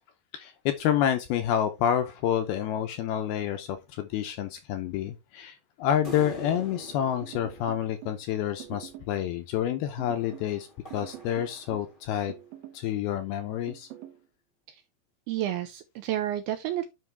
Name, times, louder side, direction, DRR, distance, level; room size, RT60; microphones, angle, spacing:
voice 1, 0.3-10.7 10.9-12.3 12.7-13.9, left 10 dB, 80° left, 2.3 m, -28 dB
sound 1, 6.0-8.7 10.2-12.2, left 1 dB, 50° left, 0.6 m, -45 dB
sound 2, 7.2-8.2 8.6-9.2 10.0-10.5 10.9-11.9 12.3-12.9 13.7-14.2, right 13 dB, 65° right, 2.2 m, -45 dB
voice 2, 15.3-16.8, right 12 dB, 85° right, 2.3 m, -30 dB
9.5 x 5.4 x 3.3 m
omnidirectional pair, 5.1 m